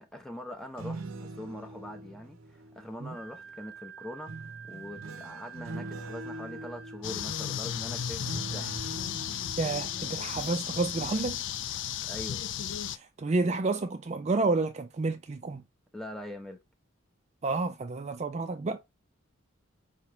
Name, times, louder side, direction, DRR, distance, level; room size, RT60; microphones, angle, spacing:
voice 1, 0.0-4.3 4.7-8.8 12.0-12.5 15.9-16.6, left 1 dB, ahead, 0.7 m, -43 dB
sound 1, 0.6-3.5 4.3-11.2 11.6-11.9, right 2 dB, 80° right, 0.7 m, -43 dB
Wind instrument woodwind instrument, 3.1-7.0, right 7 dB, 85° left, 1.5 m, -47 dB
sound 2, 7.0-13.0, left 10 dB, 60° left, 0.3 m, -34 dB
voice 2, 9.6-11.4 12.9-15.6 17.4-18.8, right 3 dB, 35° right, 0.4 m, -30 dB
4.9 x 2.9 x 3.3 m
head